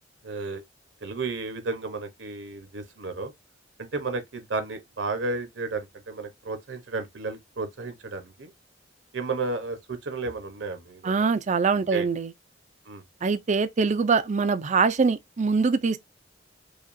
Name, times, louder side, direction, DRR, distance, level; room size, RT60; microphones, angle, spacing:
voice 1, 0.2-0.6 1.0-3.3 3.8-8.5 9.1-11.1 11.9-12.1 12.9-13.0, right 3 dB, 70° right, 0.9 m, -33 dB
voice 2, 11.0-12.3 13.2-16.0, right 4 dB, 40° right, 0.4 m, -23 dB
5.0 x 2.4 x 2.6 m
head